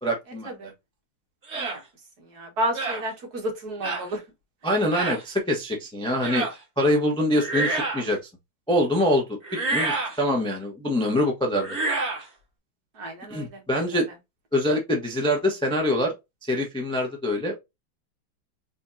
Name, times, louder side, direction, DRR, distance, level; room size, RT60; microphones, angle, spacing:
voice 1, 0.0-0.5 4.6-6.5 6.8-8.2 8.7-9.4 9.7-11.8 13.3-14.1 14.5-16.1 16.4-17.6, left 1 dB, 5° left, 0.4 m, -24 dB
sound 1, 1.5-1.8 2.7-3.0 3.8-4.1 4.9-5.2 6.2-6.6 7.3-8.1 9.4-10.2 11.6-12.2, right 3 dB, 35° right, 1.7 m, -28 dB
voice 2, 2.3-4.2 13.0-13.6, right 1 dB, 50° right, 1.7 m, -31 dB
4.3 x 3.5 x 2.7 m
omnidirectional pair, 2.3 m